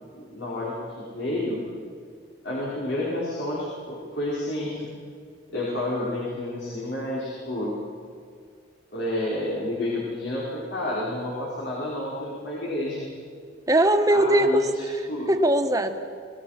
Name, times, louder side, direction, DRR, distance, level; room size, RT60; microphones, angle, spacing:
voice 1, 0.1-1.6 2.4-4.9 5.5-7.8 8.9-13.0 14.1-14.8 15.1-15.3, left 1 dB, 85° left, -6 dB, 5.3 m, -30 dB
voice 2, 13.7-15.9, right 1 dB, 20° right, 6 dB, 1.3 m, -21 dB
26.5 x 19.0 x 6.0 m, 2.2 s
head